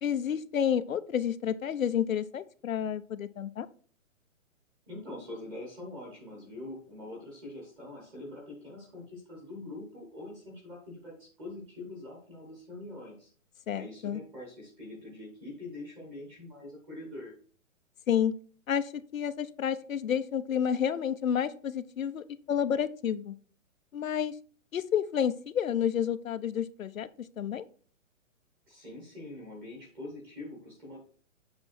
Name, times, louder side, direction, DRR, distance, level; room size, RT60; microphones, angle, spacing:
voice 1, 0.0-3.7 13.7-14.2 18.1-18.4 18.7-23.3 23.9-24.3 24.7-27.7, left 8 dB, 80° left, 14 dB, 0.9 m, -30 dB
voice 2, 4.9-13.3 13.7-17.3 28.7-31.0, left 2 dB, 10° right, -3 dB, 1.0 m, -44 dB
7.8 x 5.2 x 4.3 m, 0.43 s
hypercardioid pair, 180°, 40 cm